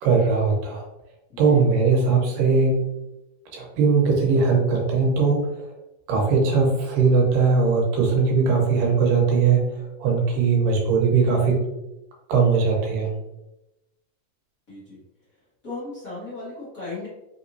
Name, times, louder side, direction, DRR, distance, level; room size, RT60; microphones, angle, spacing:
voice 1, 0.0-0.8 1.4-2.9 3.5-5.7 6.1-11.6 12.3-13.1, right 4 dB, 85° right, -1 dB, 2.4 m, -20 dB
voice 2, 1.3-1.6 10.5-10.8 14.7-15.0 15.6-17.1, left 3 dB, 65° left, -11 dB, 0.8 m, -36 dB
5.2 x 3.0 x 2.6 m, 0.94 s
omnidirectional pair, 3.8 m